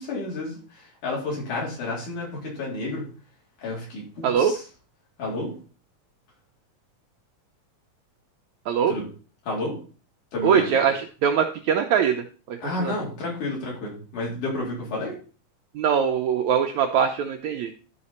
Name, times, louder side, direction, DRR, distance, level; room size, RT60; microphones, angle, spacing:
voice 1, 0.0-3.0 3.6-4.6 5.2-5.5 8.9-9.0 9.5-9.7 10.3-10.7 12.6-15.1, left 2 dB, 60° left, -4 dB, 4.8 m, -30 dB
voice 2, 10.4-12.9 15.7-17.7, right 7 dB, 75° right, 4 dB, 1.7 m, -22 dB
12.0 x 5.1 x 4.2 m, 0.38 s
omnidirectional pair, 3.9 m